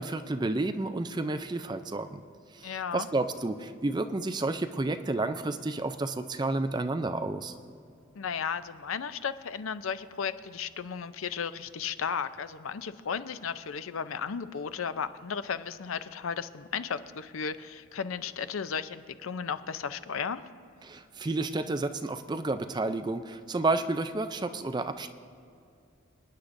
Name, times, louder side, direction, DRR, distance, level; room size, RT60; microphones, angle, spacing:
voice 1, 0.0-2.2 2.5-7.5 20.8-25.1, right 2 dB, 20° right, 9 dB, 0.4 m, -31 dB
voice 2, 2.6-3.1 8.1-20.4, left 6 dB, 90° left, 12 dB, 0.5 m, -34 dB
27.0 x 9.7 x 2.6 m, 2.6 s
head